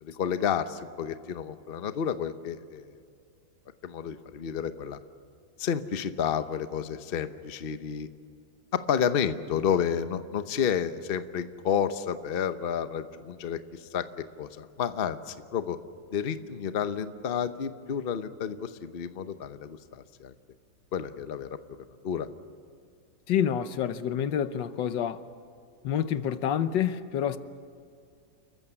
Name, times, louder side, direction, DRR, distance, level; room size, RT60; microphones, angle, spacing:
voice 1, 0.0-2.8 3.8-5.0 5.6-8.1 8.7-14.0 14.4-15.8 16.1-20.3 20.9-21.5 22.0-22.3, left 8 dB, 45° left, 0.8 m, -30 dB
voice 2, 23.3-25.2 25.8-27.4, left 9 dB, 80° left, 1.6 m, -28 dB
29.0 x 14.5 x 9.8 m
omnidirectional pair, 1.9 m